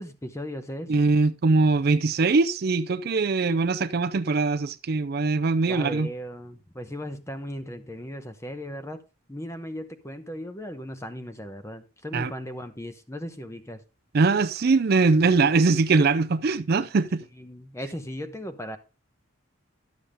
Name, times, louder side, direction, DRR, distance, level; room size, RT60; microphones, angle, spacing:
voice 1, 0.0-0.9 5.7-9.0 9.3-13.8 17.3-18.8, equal, 15° left, 0.8 m, -37 dB
voice 2, 0.9-6.1 12.1-12.3 14.1-17.2, right 3 dB, 50° right, 0.4 m, -22 dB
11.5 x 7.1 x 3.5 m
head